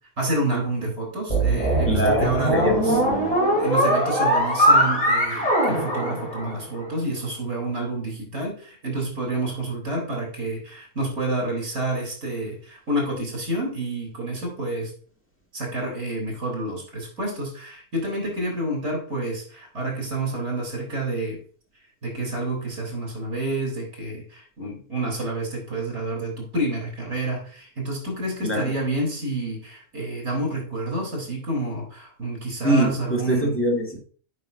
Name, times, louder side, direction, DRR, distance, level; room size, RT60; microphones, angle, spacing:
voice 1, 0.2-3.0 3.6-14.9 15.5-21.4 22.0-33.6, right 2 dB, 55° right, 0 dB, 4.1 m, -29 dB
sound 1, 1.3-6.8, right 1 dB, 25° left, 3.2 m, -21 dB
voice 2, 1.9-3.3 28.4-28.7 32.6-34.0, right 1 dB, 10° left, -2 dB, 1.8 m, -24 dB
8.8 x 5.5 x 2.7 m, 0.43 s
omnidirectional pair, 1.6 m